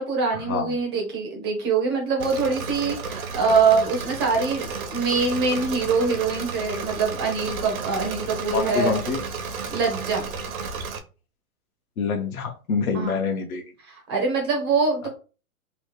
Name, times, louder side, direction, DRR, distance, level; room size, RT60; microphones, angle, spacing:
voice 1, 0.0-9.0 9.7-10.2 12.9-13.2 13.9-15.1, right 4 dB, 20° right, 1 dB, 0.5 m, -24 dB
Engine / Mechanisms, 2.2-11.0, right 5 dB, 70° right, 0.8 m, -33 dB
voice 2, 8.5-9.2 12.0-13.6, left 5 dB, 70° left, 2 dB, 0.8 m, -26 dB
2.9 x 2.1 x 3.1 m, 0.34 s
hypercardioid pair, 145°, 44 cm